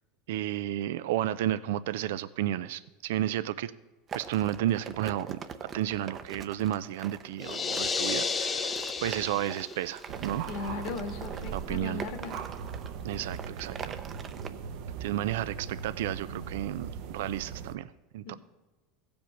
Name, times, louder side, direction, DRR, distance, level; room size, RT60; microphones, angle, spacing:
voice 1, 0.3-3.7 4.1-5.4 5.7-10.4 11.5-12.0 13.0-14.0 15.0-18.4, right 13 dB, 80° right, 15 dB, 0.4 m, -32 dB
sound 1, 4.1-14.5, right 6 dB, 30° right, 0.6 m, -43 dB
sound 2, 7.4-9.9, left 5 dB, 20° left, 0.5 m, -32 dB
sound 3, 10.1-17.8, right 7 dB, 60° right, 0.8 m, -39 dB
voice 2, 10.5-12.4, left 4 dB, 60° left, 6 dB, 1.6 m, -37 dB
15.0 x 5.2 x 5.9 m, 1.2 s
supercardioid pair, 125°, 0 cm